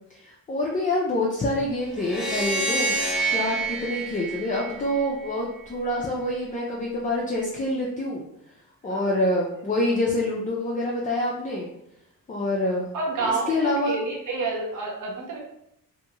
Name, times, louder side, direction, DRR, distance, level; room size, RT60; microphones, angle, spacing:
voice 1, 0.2-3.0 3.3-8.2 8.8-11.7 12.3-12.9 13.2-14.0, left 1 dB, 25° left, -4 dB, 0.4 m, -26 dB
sound 1, 2.0-5.3, right 3 dB, ahead, 0.8 m, -28 dB
voice 2, 12.9-15.4, right 3 dB, 60° right, -2 dB, 0.8 m, -29 dB
2.7 x 2.3 x 2.9 m, 0.79 s
cardioid pair, 115°, 35 cm